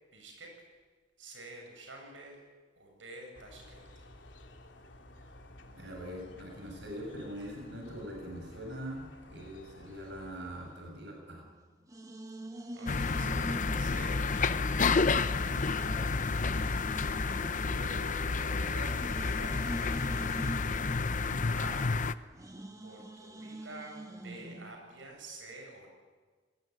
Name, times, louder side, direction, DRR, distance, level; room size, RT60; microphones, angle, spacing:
voice 1, 0.1-0.6 1.2-2.4 2.8-4.0 12.7-14.8 17.6-20.8 21.5-22.0 22.8-25.9, right 2 dB, 90° right, 2 dB, 7.5 m, -48 dB
sound 1, 3.3-11.4, left 1 dB, 75° left, 3.3 m, -54 dB
voice 2, 5.7-11.4 15.8-16.0 16.6-17.2, equal, 65° right, 0 dB, 7.3 m, -43 dB
sound 2, 11.2-14.9 15.4-24.8, right 1 dB, 20° right, 1.9 m, -45 dB
sound 3, 12.9-22.1, left 4 dB, 45° left, 0.8 m, -30 dB
28.5 x 20.0 x 9.4 m, 1.4 s
head